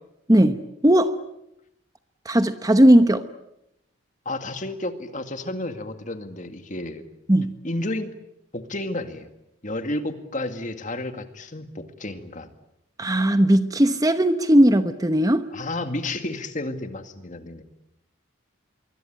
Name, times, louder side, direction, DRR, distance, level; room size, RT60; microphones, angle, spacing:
voice 1, 0.3-1.1 2.2-3.2 7.3-7.6 13.0-15.5, right 1 dB, 15° right, 10 dB, 1.0 m, -18 dB
voice 2, 4.3-7.1 7.6-8.1 8.5-9.3 9.6-12.5 15.5-17.6, left 2 dB, 35° left, 8 dB, 2.2 m, -31 dB
25.5 x 24.0 x 8.9 m, 0.83 s
head